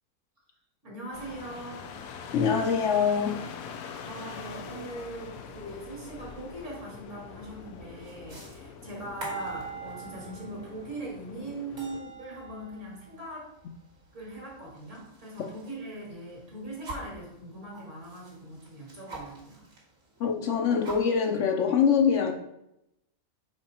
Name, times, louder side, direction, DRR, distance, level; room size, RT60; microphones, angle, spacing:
voice 1, 0.8-1.9 4.0-13.5 14.1-19.7, right 1 dB, 60° right, 2.3 m, -41 dB
sound 1, 1.1-12.0, left 6 dB, 90° left, 1.1 m, -44 dB
voice 2, 2.3-3.5 20.2-22.3, left 6 dB, 65° left, 0.9 m, -24 dB
sound 2, 7.3-15.8 16.1-17.2 17.7-19.8 20.1-20.2 20.5-21.4, right 4 dB, 75° right, 2.3 m, -44 dB
5.1 x 4.9 x 4.2 m
omnidirectional pair, 1.5 m